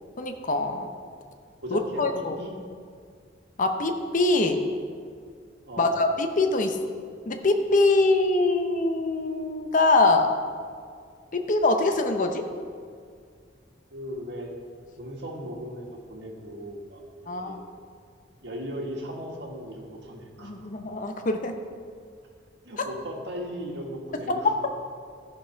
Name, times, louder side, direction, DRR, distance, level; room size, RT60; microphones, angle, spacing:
voice 1, 0.2-0.9 1.7-2.3 3.6-4.6 5.8-6.8 7.3-10.3 11.3-12.4 17.3-17.6 20.4-21.5 24.3-24.4, left 2 dB, 45° left, 5 dB, 0.8 m, -23 dB
voice 2, 1.6-2.5 5.7-6.0 13.9-14.5 15.0-17.6 18.4-20.7 22.6-24.5, equal, 65° right, 0 dB, 1.7 m, -37 dB
14.0 x 5.4 x 5.7 m, 2.1 s
head